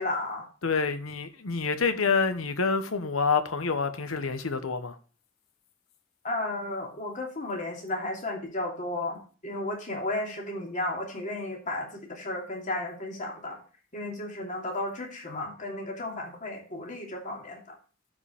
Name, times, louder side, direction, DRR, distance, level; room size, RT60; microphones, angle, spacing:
voice 1, 0.0-0.5 6.2-13.6 13.9-17.6, left 2 dB, 40° left, 2.8 m, -33 dB
voice 2, 0.6-4.9, left 5 dB, 85° left, 1.1 m, -27 dB
14.5 x 5.1 x 3.4 m
head